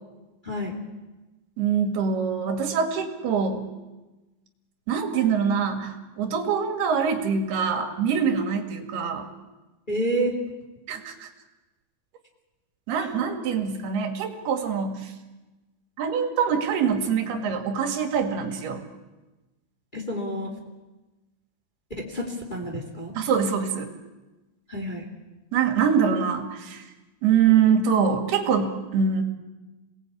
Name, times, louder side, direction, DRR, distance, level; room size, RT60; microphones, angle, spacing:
voice 1, 1.6-3.6 4.9-9.3 10.9-11.3 12.9-15.1 16.0-18.8 23.2-23.9 25.5-26.9 27.2-29.2, right 6 dB, 80° right, 4 dB, 4.2 m, -24 dB
voice 2, 9.9-10.3 19.9-20.5 22.0-23.1 24.7-25.0, right 1 dB, 15° left, 1 dB, 2.7 m, -29 dB
28.0 x 19.0 x 8.6 m, 1.1 s
omnidirectional pair, 4.5 m